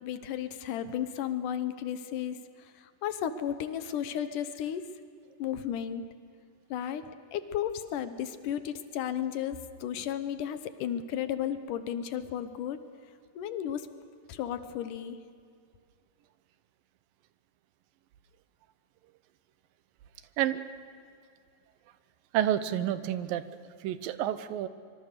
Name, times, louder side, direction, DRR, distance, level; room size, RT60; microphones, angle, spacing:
voice 1, 0.0-4.9 5.4-6.1 6.7-12.8 13.4-13.9 14.3-15.2, left 9 dB, 75° left, 10 dB, 2.4 m, -34 dB
voice 2, 22.3-23.4 23.8-24.7, right 11 dB, 90° right, 12 dB, 2.7 m, -29 dB
25.5 x 24.0 x 6.7 m, 2.3 s
omnidirectional pair, 3.9 m